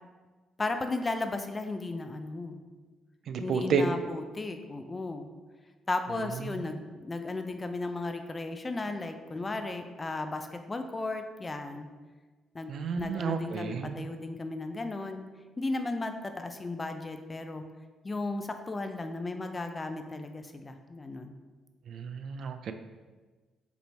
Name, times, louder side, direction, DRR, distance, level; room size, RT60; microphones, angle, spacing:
voice 1, 0.6-2.6 3.4-5.3 5.9-11.9 12.5-12.7 13.0-15.2 15.6-17.6 18.0-21.3, left 2 dB, 25° left, 7 dB, 0.4 m, -35 dB
voice 2, 3.3-3.8 6.4-6.6 12.7-14.0 21.9-22.7, right 6 dB, 65° right, 8 dB, 0.3 m, -31 dB
5.0 x 3.2 x 3.3 m, 1.3 s
cardioid pair, 90°, 0 cm